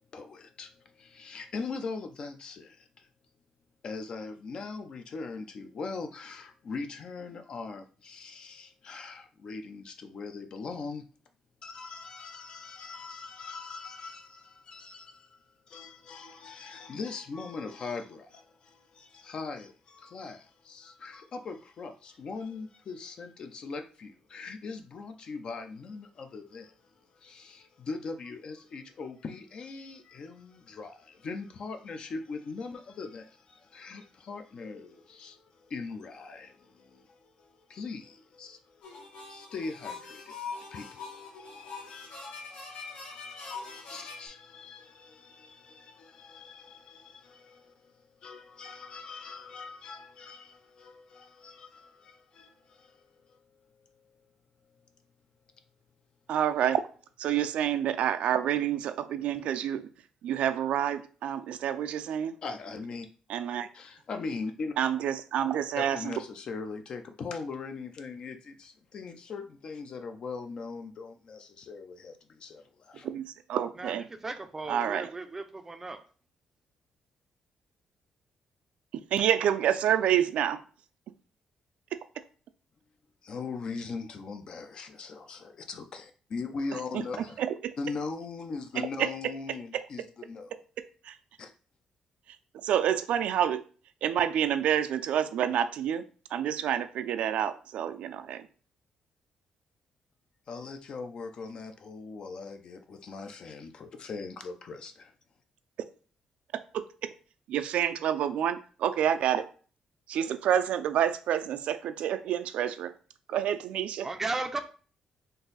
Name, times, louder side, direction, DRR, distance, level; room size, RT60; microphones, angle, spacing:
voice 1, 0.1-3.1 3.8-11.0 11.6-53.4 53.7-54.1 62.4-63.1 63.7-64.7 65.8-73.1 83.2-87.4 87.8-90.6 91.4-91.5 100.5-105.1, left 4 dB, 45° left, 0.5 m, -41 dB
sound 1, 38.8-44.3, left 4 dB, 75° left, 1.4 m, -43 dB
voice 2, 56.3-56.9 57.2-59.9 60.2-62.4 63.3-63.7 64.8-66.1 73.0-74.1 74.7-75.1 78.9-80.6 81.9-82.0 86.9-87.0 87.4-87.7 88.8-89.1 89.7-89.8 91.0-91.2 92.5-93.6 94.0-98.5 106.5-106.9 107.5-109.5 110.1-112.9 113.3-114.1, right 10 dB, 75° right, 0.4 m, -28 dB
voice 3, 74.2-76.0 114.0-114.6, right 3 dB, 20° right, 0.4 m, -35 dB
3.9 x 2.6 x 4.0 m
cardioid pair, 155°, 2 cm